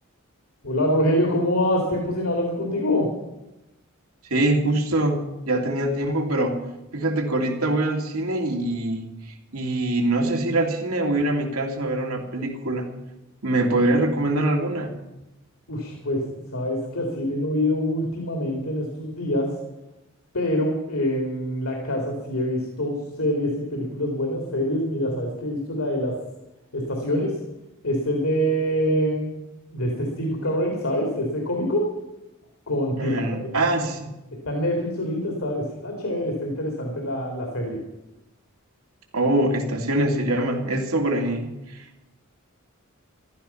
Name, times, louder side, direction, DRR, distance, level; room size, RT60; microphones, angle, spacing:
voice 1, 0.6-3.1 15.7-16.2 16.5-19.6 20.3-26.2 26.7-27.4 27.8-29.3 29.7-31.9 32.7-33.5 34.3-37.8, equal, 75° left, 1 dB, 2.7 m, -25 dB
voice 2, 4.3-6.6 6.9-9.1 9.5-12.9 13.4-14.9 33.0-34.1 39.1-42.0, right 1 dB, 90° right, 1 dB, 2.7 m, -24 dB
14.5 x 12.5 x 5.7 m, 0.95 s
head